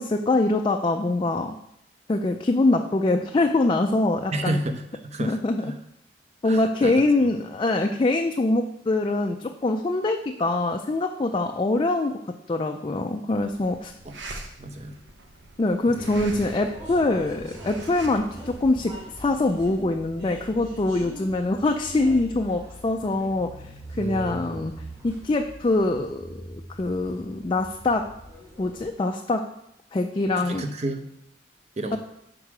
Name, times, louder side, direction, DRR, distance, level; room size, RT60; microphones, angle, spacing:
voice 1, 0.0-1.5 2.1-4.6 5.2-5.7 6.4-13.9 15.6-28.1 28.6-29.5 29.9-30.6 31.9-32.0, left 2 dB, 25° left, 4 dB, 0.4 m, -24 dB
voice 2, 4.3-5.7 6.4-6.9 7.2-7.3 14.0-14.2 14.6-15.0 15.9-16.2 23.9-24.7 30.4-31.1 31.8-32.0, right 1 dB, 35° right, 6 dB, 0.7 m, -31 dB
sound 1, 13.3-19.8, right 2 dB, 70° right, 0.9 m, -44 dB
sound 2, 16.0-28.9, right 1 dB, 20° right, 2.7 m, -42 dB
6.4 x 4.6 x 6.0 m, 0.77 s
head